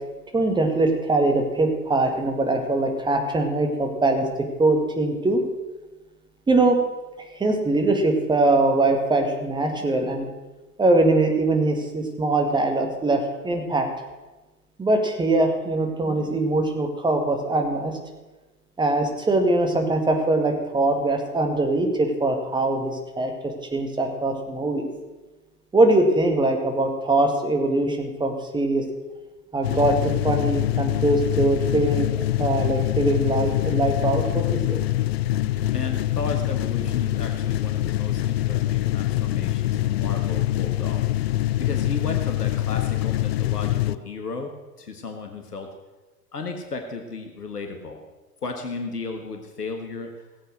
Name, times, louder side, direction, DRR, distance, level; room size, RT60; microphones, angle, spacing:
voice 1, 0.3-5.4 6.5-6.8 7.4-10.3 10.8-13.9 14.8-17.9 18.8-23.3 23.7-24.9 25.7-28.8 29.5-32.1 32.4-34.8, right 2 dB, 10° right, 4 dB, 2.0 m, -22 dB
sound 1, 29.6-44.0, left 14 dB, 45° left, 0.4 m, -24 dB
voice 2, 35.7-41.1 41.6-44.5 44.8-45.7 46.3-48.0 48.4-50.1, left 4 dB, 80° left, 4 dB, 1.6 m, -34 dB
17.0 x 8.0 x 6.4 m, 1.1 s
figure-of-eight pair, 100°, 46 cm